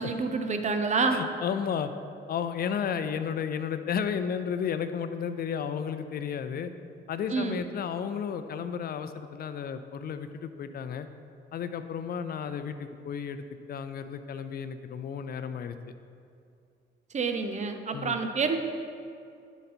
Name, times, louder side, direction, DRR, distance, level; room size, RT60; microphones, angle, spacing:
voice 1, 0.0-1.2 7.3-7.6 17.1-18.6, right 4 dB, 35° right, 6 dB, 0.7 m, -28 dB
voice 2, 1.1-1.9 2.3-6.7 7.1-11.1 11.5-15.8 17.9-18.2, left 7 dB, 50° left, 10 dB, 0.5 m, -33 dB
9.7 x 4.0 x 4.3 m, 2.5 s
cardioid pair, 90°, 20 cm